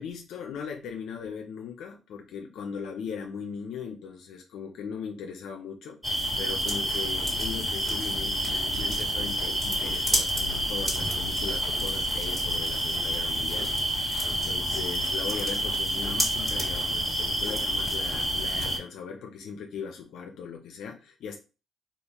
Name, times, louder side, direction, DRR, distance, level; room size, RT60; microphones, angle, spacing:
voice 1, 0.0-6.0 6.4-21.4, left 6 dB, 80° left, 2 dB, 0.5 m, -39 dB
sound 1, 6.0-18.8, equal, 5° right, 1.6 m, -28 dB
3.5 x 2.4 x 2.9 m, 0.32 s
cardioid pair, 90°, 0 cm